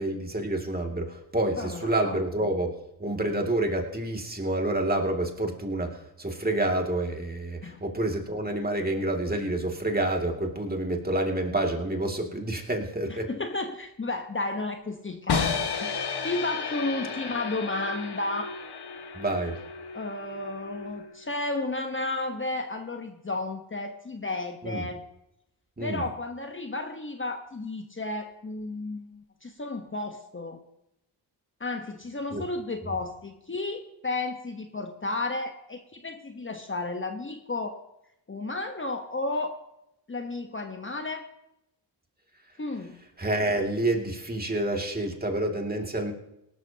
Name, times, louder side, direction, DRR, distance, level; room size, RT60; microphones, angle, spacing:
voice 1, 0.0-13.3 19.1-19.6 24.6-24.9 25.8-26.0 32.3-32.4 43.2-46.1, right 1 dB, 20° right, 2 dB, 2.5 m, -28 dB
voice 2, 1.6-2.2 7.6-7.8 13.1-18.5 19.9-25.0 25.8-30.6 31.6-37.8 38.3-39.5 40.1-41.3 42.6-43.0 44.7-44.8, left 2 dB, 30° left, 5 dB, 1.2 m, -33 dB
sound 1, 15.3-21.3, left 5 dB, 65° left, 1.5 m, -33 dB
18.0 x 12.5 x 2.9 m, 0.84 s
cardioid pair, 55°, 42 cm